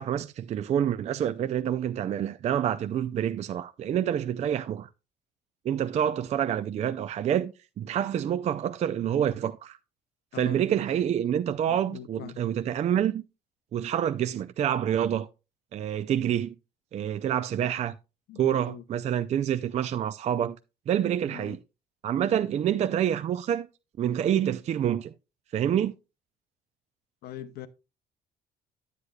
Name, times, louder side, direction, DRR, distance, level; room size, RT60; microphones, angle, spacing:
voice 1, 0.0-4.9 5.6-9.8 10.3-13.2 13.7-15.3 15.7-16.5 16.9-18.0 18.4-20.6 20.9-21.6 22.0-23.7 24.0-25.1 25.5-25.9, right 10 dB, 40° right, 0.4 m, -27 dB
voice 2, 10.3-10.6 11.7-12.4 18.3-18.8 21.3-21.6 27.2-27.7, left 11 dB, 70° left, 0.6 m, -42 dB
9.7 x 8.1 x 2.3 m
cardioid pair, 110°, 17 cm